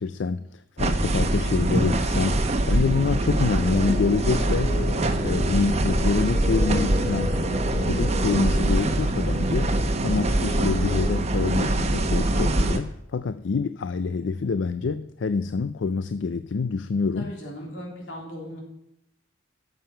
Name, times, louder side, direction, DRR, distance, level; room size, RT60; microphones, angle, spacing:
voice 1, 0.0-4.8 5.2-7.4 7.7-17.3, left 4 dB, 70° left, 13 dB, 0.4 m, -26 dB
sound 1, 0.8-12.8, right 1 dB, 35° right, 0.9 m, -23 dB
sound 2, 3.7-11.2, left 1 dB, 30° left, 0.9 m, -36 dB
voice 2, 17.2-18.6, equal, 90° left, -1 dB, 3.5 m, -37 dB
12.5 x 7.4 x 5.7 m, 0.80 s
head